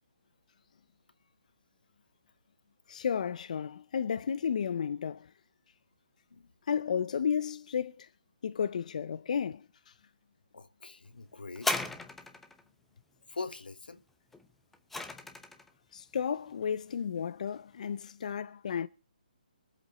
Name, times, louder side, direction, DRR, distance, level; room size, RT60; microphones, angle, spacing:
voice 1, 2.9-5.3 6.7-8.1 8.4-9.9 15.9-18.9, left 7 dB, 50° left, 0.7 m, -33 dB
voice 2, 10.5-11.7 13.3-14.0, left 3 dB, 90° left, 1.4 m, -42 dB
sound 1, 11.6-12.6 14.3-15.7 16.5-16.6, left 2 dB, 5° left, 0.8 m, -35 dB
23.0 x 8.0 x 5.5 m
hypercardioid pair, 155°, 5 cm